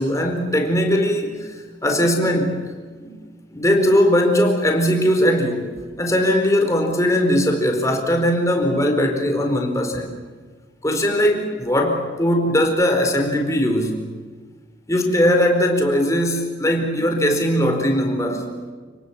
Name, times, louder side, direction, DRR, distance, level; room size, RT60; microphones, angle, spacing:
voice 1, 0.0-1.5 1.8-3.1 3.5-5.7 6.0-10.2 10.8-14.0 14.9-18.6, equal, 15° left, 4 dB, 4.5 m, -19 dB
30.0 x 19.5 x 7.4 m, 1.5 s
head